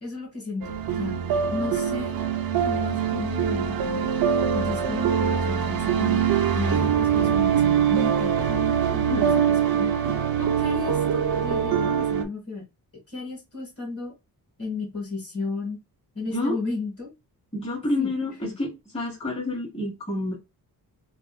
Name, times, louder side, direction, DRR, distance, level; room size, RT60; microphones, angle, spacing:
voice 1, 0.0-1.2 1.5-2.3 2.6-4.1 4.5-6.3 6.5-9.3 9.7-9.9 10.4-12.7 13.1-14.1 14.6-15.8 16.1-17.1 18.0-18.1 18.4-18.5, left 3 dB, 40° left, 1.4 m, -33 dB
sound 1, 0.6-12.2, right 8 dB, 70° right, 0.6 m, -23 dB
voice 2, 8.9-9.5 16.3-16.6 17.5-20.3, left 2 dB, 15° left, 1.5 m, -29 dB
3.6 x 2.5 x 2.3 m
wide cardioid pair, 150°, 37 cm